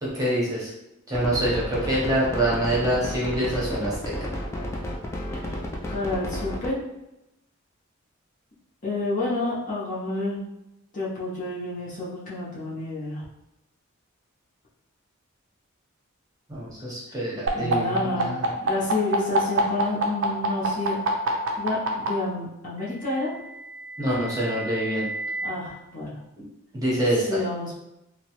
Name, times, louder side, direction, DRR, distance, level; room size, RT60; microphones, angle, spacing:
voice 1, 0.0-0.7 1.1-4.3 16.5-18.5 24.0-25.1 26.7-27.4, right 1 dB, 15° right, -7 dB, 0.8 m, -26 dB
sound 1, 1.1-6.7, left 1 dB, 15° left, 0.3 m, -32 dB
voice 2, 5.9-6.8 8.8-10.4 10.9-13.2 17.5-18.3 18.6-21.0 21.6-23.3 25.4-26.2 27.3-27.8, left 2 dB, 40° left, -7 dB, 0.7 m, -29 dB
sound 2, 17.5-22.1 23.2-25.5, right 4 dB, 65° right, 0.5 m, -27 dB
2.8 x 2.1 x 2.9 m, 0.90 s
head